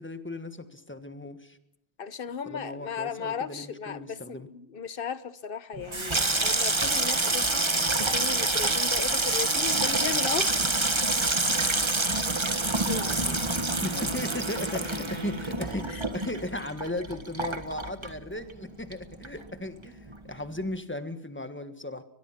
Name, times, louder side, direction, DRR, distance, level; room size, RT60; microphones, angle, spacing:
voice 1, 0.0-1.6 2.4-4.5 13.8-22.0, left 1 dB, 10° left, 10 dB, 1.6 m, -36 dB
voice 2, 2.0-7.8 8.1-10.6 12.9-13.4 13.9-14.1 15.9-16.0, left 7 dB, 55° left, 15 dB, 1.2 m, -36 dB
Water tap faucet / Sink (filling or washing), 5.8-18.6 18.9-19.6 19.8-20.2, right 2 dB, 25° right, 1.5 m, -27 dB
Wind instrument woodwind instrument, 12.8-16.4, right 4 dB, 40° right, 1.4 m, -43 dB
22.5 x 22.0 x 5.9 m, 0.76 s
omnidirectional pair, 1.1 m